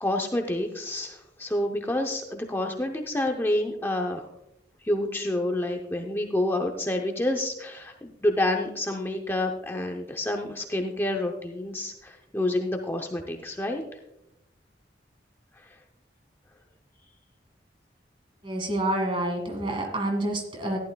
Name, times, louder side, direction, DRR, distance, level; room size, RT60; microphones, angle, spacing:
voice 1, 0.0-4.2 4.8-13.8, left 1 dB, 15° left, 2 dB, 0.6 m, -28 dB
voice 2, 18.4-20.8, right 1 dB, 30° right, 4 dB, 1.9 m, -28 dB
14.5 x 11.5 x 2.2 m, 0.87 s
head